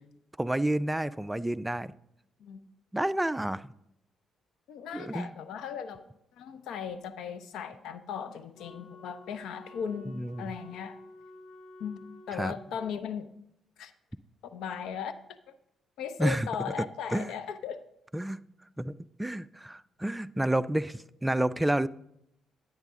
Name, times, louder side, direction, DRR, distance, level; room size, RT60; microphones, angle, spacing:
voice 1, 0.4-1.9 2.9-3.7 4.9-5.3 10.1-10.6 12.3-12.5 16.2-16.5 17.1-17.3 18.1-18.4 18.8-21.9, right 1 dB, 10° right, 0.3 m, -30 dB
voice 2, 4.7-6.1 6.4-11.0 11.8-12.0 12.3-13.3 13.8-13.9 14.4-15.2 15.5-15.6 16.0-17.8, left 7 dB, 80° left, 0.6 m, -37 dB
Wind instrument woodwind instrument, 8.5-12.9, left 1 dB, 60° left, 4.6 m, -50 dB
10.5 x 9.0 x 3.6 m
cardioid pair, 90°, 0 cm